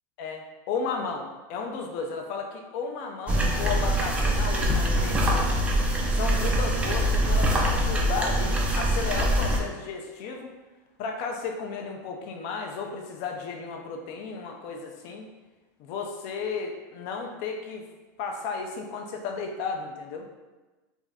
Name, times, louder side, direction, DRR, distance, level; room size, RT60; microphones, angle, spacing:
voice 1, 0.2-5.5 6.1-10.5 11.0-15.3 15.8-17.8 18.2-20.3, left 4 dB, 50° left, 3 dB, 0.5 m, -34 dB
Acoustic guitar / Strum, 3.3-6.5, equal, 15° left, 0.9 m, -40 dB
sound 1, 3.3-9.6, equal, 10° right, 0.3 m, -24 dB
2.5 x 2.3 x 3.4 m, 1.2 s
supercardioid pair, 155°, 11 cm